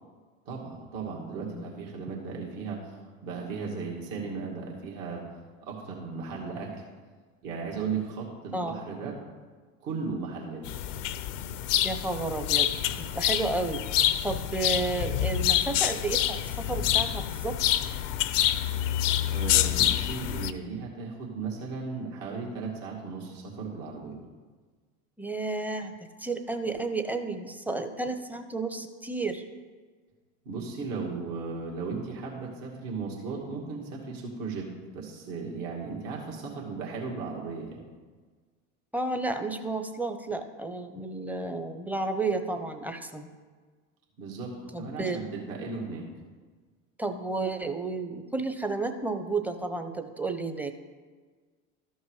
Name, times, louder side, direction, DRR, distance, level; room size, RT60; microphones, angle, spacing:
voice 1, 0.5-5.3 5.6-6.8 7.4-9.2 9.8-10.6 19.3-24.2 30.5-34.7 34.9-37.8 44.2-46.1, right 4 dB, 55° right, -2 dB, 2.3 m, -36 dB
voice 2, 1.3-1.7 8.5-8.8 11.8-12.7 13.0-13.9 14.2-17.6 25.2-29.4 38.9-43.3 44.7-45.2 47.0-50.7, right 3 dB, 5° right, 7 dB, 0.8 m, -32 dB
sound 1, 10.6-20.5, left 12 dB, 70° left, 0.6 m, -27 dB
13.0 x 5.4 x 4.9 m, 1.5 s
hypercardioid pair, 75°, 38 cm